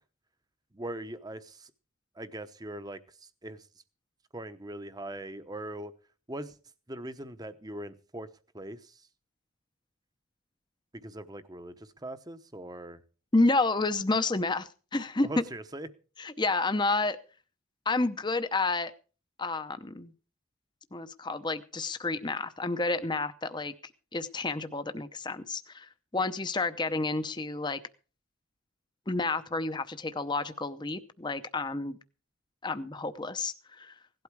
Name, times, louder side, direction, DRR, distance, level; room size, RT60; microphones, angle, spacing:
voice 1, 0.7-1.7 2.2-3.7 4.3-5.9 6.3-6.6 6.9-9.1 10.9-13.0 15.2-15.9, right 1 dB, 20° right, 12 dB, 0.9 m, -41 dB
voice 2, 13.3-15.4 16.2-17.2 17.9-18.9 19.4-20.1 20.9-23.7 24.1-27.8 29.1-32.0 32.6-33.9, left 3 dB, 20° left, 11 dB, 0.7 m, -30 dB
17.5 x 12.0 x 4.7 m, 0.38 s
head